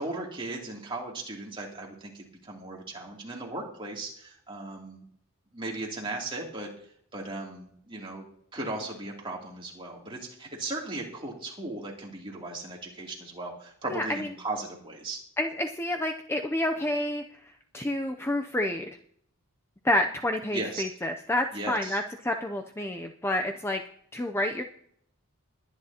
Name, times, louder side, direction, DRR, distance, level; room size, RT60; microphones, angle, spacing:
voice 1, 0.0-5.1 5.5-6.7 7.1-8.2 8.5-15.2 20.5-20.9 21.5-22.0, right 2 dB, 25° right, -2 dB, 2.9 m, -37 dB
voice 2, 13.9-14.3 15.4-17.2 17.7-18.9 19.8-23.8 24.1-24.6, left 1 dB, 10° left, 4 dB, 0.5 m, -29 dB
21.5 x 10.0 x 2.9 m, 0.66 s
head